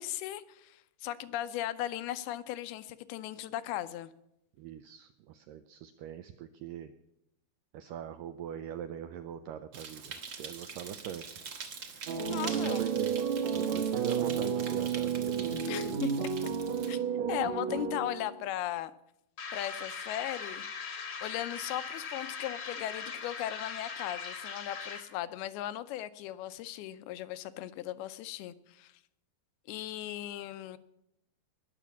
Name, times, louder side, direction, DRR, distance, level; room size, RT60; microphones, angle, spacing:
voice 1, 0.0-4.1 12.3-12.8 15.7-16.3 16.9-17.0 17.3-18.9 19.5-20.6 21.2-28.9 29.7-30.8, left 13 dB, 80° left, 13 dB, 2.6 m, -37 dB
voice 2, 4.6-6.9 7.7-11.4 12.2-13.2 13.5-16.1, right 9 dB, 85° right, 9 dB, 1.9 m, -42 dB
sound 1, 9.7-17.0, right 6 dB, 55° right, 1.6 m, -44 dB
sound 2, 12.1-18.5, right 7 dB, 70° right, 1.7 m, -32 dB
sound 3, 19.4-25.2, left 5 dB, 45° left, 1.2 m, -40 dB
20.0 x 6.8 x 7.1 m, 0.80 s
omnidirectional pair, 4.6 m